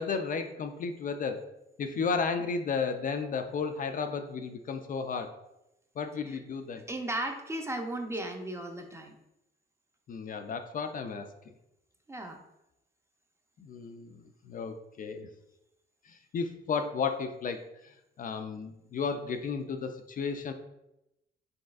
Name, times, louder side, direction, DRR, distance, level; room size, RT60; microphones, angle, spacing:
voice 1, 0.0-1.4 1.8-5.3 6.0-6.9 10.1-11.3 13.6-15.3 16.1-20.5, left 5 dB, 45° left, 6 dB, 0.4 m, -33 dB
voice 2, 6.9-9.1 12.1-12.4, right 1 dB, 15° right, 4 dB, 0.6 m, -36 dB
5.2 x 3.2 x 2.4 m, 0.88 s
cardioid pair, 90°, 20 cm